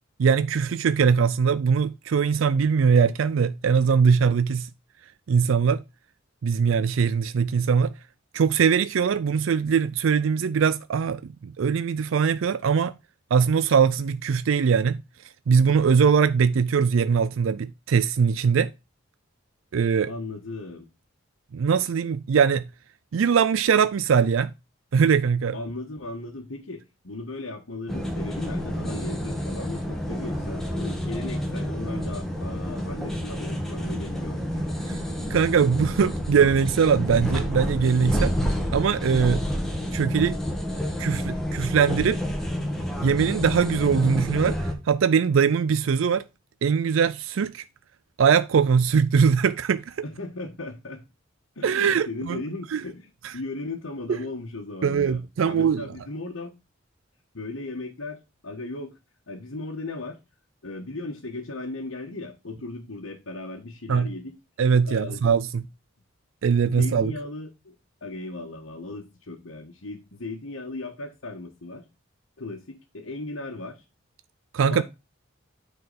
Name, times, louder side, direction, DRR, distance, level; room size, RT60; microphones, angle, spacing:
voice 1, 0.2-4.7 5.3-5.8 6.4-7.9 8.3-12.9 13.3-15.0 15.5-18.7 19.7-20.1 21.5-22.6 23.1-24.5 24.9-25.6 34.9-35.0 35.3-38.3 38.7-39.4 39.9-40.4 41.0-42.2 43.0-46.3 46.6-47.6 48.2-50.0 51.6-52.4 52.7-52.8 53.2-53.3 54.8-55.8 63.9-64.1 64.6-65.6 66.4-67.1 74.5-74.8, right 6 dB, 70° right, 0.4 m, -21 dB
voice 2, 20.1-20.9 25.5-34.9 50.0-51.0 51.5-56.5 57.3-59.0 59.3-60.2 60.6-64.3 64.8-65.2 66.6-67.7 68.0-71.8 72.4-73.8 74.6-74.8, left 2 dB, 85° left, 1.5 m, -37 dB
sound 1, 27.9-44.7, equal, ahead, 1.5 m, -29 dB
9.4 x 4.6 x 4.1 m
head